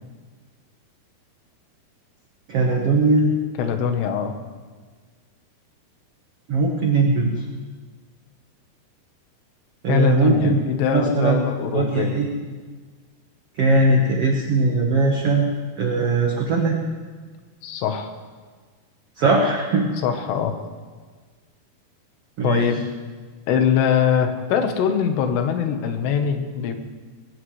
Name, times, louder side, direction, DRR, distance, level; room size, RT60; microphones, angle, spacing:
voice 1, 2.5-3.4 6.5-7.4 9.8-10.6 10.9-11.4 11.7-12.3 13.6-15.5 15.8-16.8 19.2-19.9 22.4-22.7, right 3 dB, 65° right, 0 dB, 1.5 m, -19 dB
voice 2, 3.6-4.3 9.9-12.2 17.6-18.1 20.0-20.5 22.4-22.8 23.5-26.7, left 7 dB, 85° left, 6 dB, 3.3 m, -22 dB
21.5 x 16.5 x 3.2 m, 1.5 s
omnidirectional pair, 4.7 m